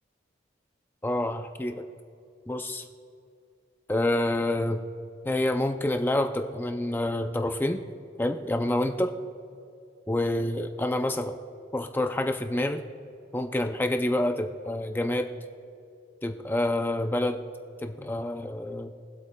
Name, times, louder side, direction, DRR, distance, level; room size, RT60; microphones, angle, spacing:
voice 1, 1.0-1.8 2.5-2.9 3.9-4.8 5.2-7.8 8.2-9.1 10.1-11.4 11.7-12.8 13.3-15.3 16.2-17.4 17.8-18.9, left 1 dB, 10° left, 5 dB, 0.4 m, -27 dB
23.0 x 8.3 x 2.2 m, 2.6 s
head